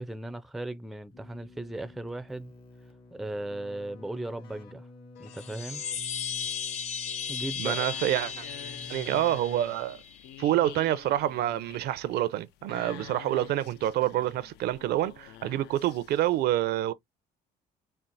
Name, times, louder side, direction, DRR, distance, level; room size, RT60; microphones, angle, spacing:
voice 1, 0.0-2.5 3.1-4.9 5.2-5.8 7.3-7.9, right 1 dB, ahead, 0.4 m, -37 dB
Keyboard (musical), 1.1-9.8, left 1 dB, 70° left, 1.6 m, -50 dB
sound 1, 5.2-10.3, left 7 dB, 40° left, 0.7 m, -36 dB
sound 2, 7.3-16.4, left 12 dB, 85° left, 0.5 m, -48 dB
voice 2, 7.6-8.4 8.9-10.0 10.4-16.9, right 13 dB, 70° right, 0.5 m, -27 dB
4.4 x 2.0 x 3.9 m
cardioid pair, 110°, 17 cm